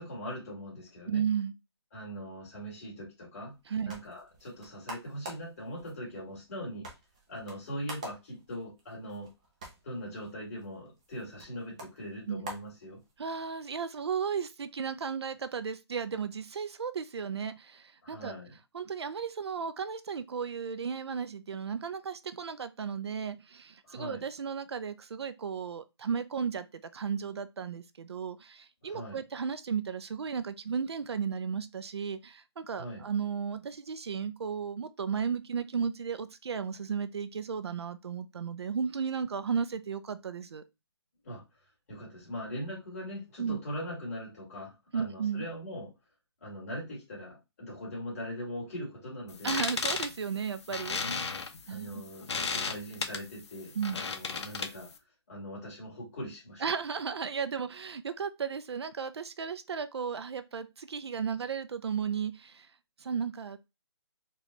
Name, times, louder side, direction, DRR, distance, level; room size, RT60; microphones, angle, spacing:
voice 1, 0.0-1.2 1.9-3.6 3.8-6.9 7.3-9.3 9.8-13.0 18.0-18.5 23.8-24.2 28.8-29.2 32.8-33.0 41.2-41.4 41.9-45.9 46.4-49.6 51.0-51.3 51.7-54.9 55.3-56.6, equal, 30° left, 2.1 m, -41 dB
voice 2, 1.1-1.5 3.7-3.9 12.3-12.5 13.2-18.3 18.7-26.7 26.9-40.6 43.4-43.6 44.9-45.5 49.4-51.0 51.7-52.0 53.8-54.0 56.6-62.7 63.0-63.6, right 6 dB, 70° right, 0.4 m, -34 dB
sound 1, 3.5-13.4, right 1 dB, 15° right, 0.5 m, -48 dB
sound 2, 49.3-55.0, left 5 dB, 75° left, 0.6 m, -35 dB
4.2 x 2.3 x 2.9 m
hypercardioid pair, 175°, 14 cm